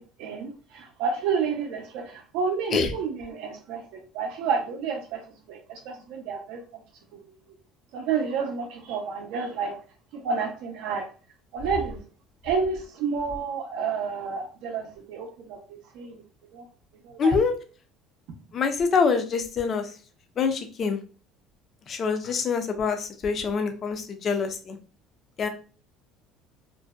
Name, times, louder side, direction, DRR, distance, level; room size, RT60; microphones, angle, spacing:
voice 1, 0.0-5.2 5.5-6.6 7.1-7.3 7.9-9.8 10.1-11.1 11.5-12.0 12.4-16.2 16.5-16.6 17.0-17.4, right 5 dB, 70° right, 2 dB, 0.5 m, -30 dB
voice 2, 17.2-17.5 18.5-19.9 20.4-21.0 21.9-24.8 25.4-25.5, left 5 dB, 35° left, 6 dB, 0.4 m, -25 dB
2.5 x 2.1 x 2.3 m, 0.37 s
cardioid pair, 145°, 0 cm